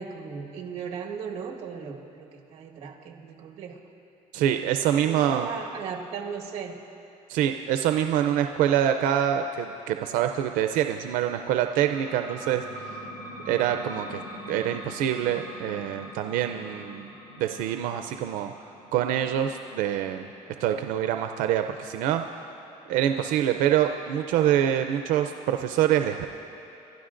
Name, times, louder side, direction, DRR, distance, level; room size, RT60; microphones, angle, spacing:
voice 1, 0.0-3.8 5.0-6.8, right 6 dB, 50° right, 0 dB, 1.5 m, -37 dB
voice 2, 4.3-5.5 7.3-12.6 13.5-14.2 14.5-18.5 18.9-20.3 20.6-22.2 22.9-26.3, right 10 dB, 90° right, 7 dB, 0.5 m, -25 dB
sound 1, 11.6-22.9, equal, 55° left, 3.6 m, -44 dB
29.5 x 12.5 x 2.6 m, 2.9 s
cardioid pair, 175°, 13 cm